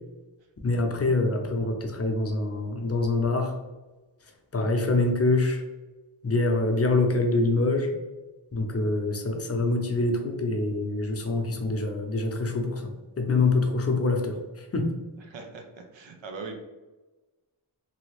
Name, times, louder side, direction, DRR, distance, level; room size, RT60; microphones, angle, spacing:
voice 1, 0.6-3.6 4.5-5.6 6.2-7.9 8.5-14.9, left 2 dB, 35° left, 3 dB, 0.6 m, -25 dB
voice 2, 15.3-16.6, right 4 dB, 90° right, 4 dB, 0.7 m, -40 dB
2.8 x 2.7 x 3.1 m, 1.2 s
wide cardioid pair, 80°, 44 cm